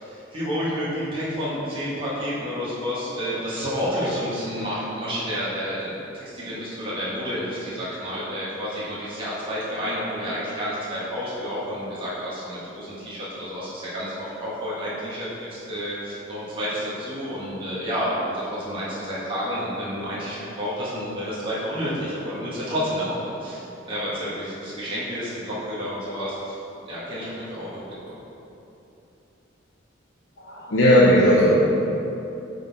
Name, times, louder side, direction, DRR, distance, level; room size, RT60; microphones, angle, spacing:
voice 1, 0.0-26.5 26.8-27.8, equal, 25° right, -9 dB, 1.5 m, -30 dB
voice 2, 30.4-31.5, equal, 80° left, -7 dB, 0.9 m, -16 dB
8.6 x 4.1 x 4.1 m, 2.9 s
head